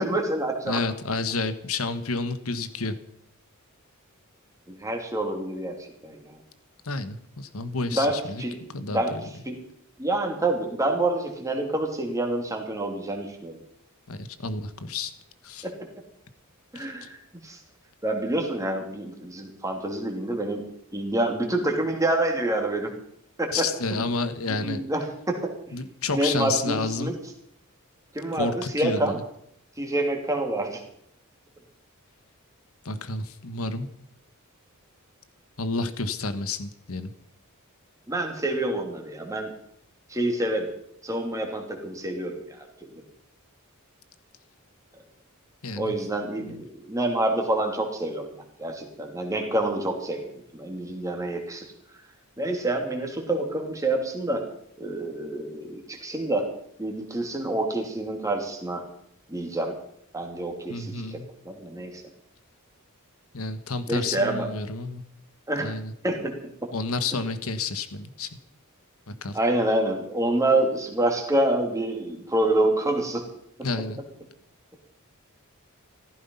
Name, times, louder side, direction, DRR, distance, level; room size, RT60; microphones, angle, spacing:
voice 1, 0.0-0.8 4.7-5.8 6.0-6.3 7.9-8.6 8.9-9.2 9.5-9.6 10.0-13.6 15.6-15.7 16.7-17.2 17.4-17.6 18.0-20.6 20.9-22.9 23.4-24.0 24.5-25.5 26.1-27.1 28.1-29.2 29.8-30.8 38.1-39.5 40.1-40.7 41.0-43.0 45.8-48.2 48.6-51.6 52.4-54.4 54.8-56.4 56.8-58.8 59.3-59.7 60.1-61.2 61.4-62.0 63.9-64.5 65.5-65.7 66.0-66.4 69.3-73.2, right 1 dB, 15° right, 2 dB, 3.0 m, -27 dB
voice 2, 0.7-2.9 6.8-8.4 8.7-9.2 14.1-15.1 15.4-15.7 16.7-16.9 23.5-24.8 25.7-27.1 28.3-29.2 32.8-33.9 35.6-37.1 45.6-46.0 46.4-46.6 60.7-61.3 63.3-65.0 65.6-65.9 66.7-68.3 69.1-69.4 73.6-74.0, left 3 dB, 70° left, 12 dB, 1.4 m, -30 dB
15.5 x 14.0 x 5.6 m, 0.72 s
head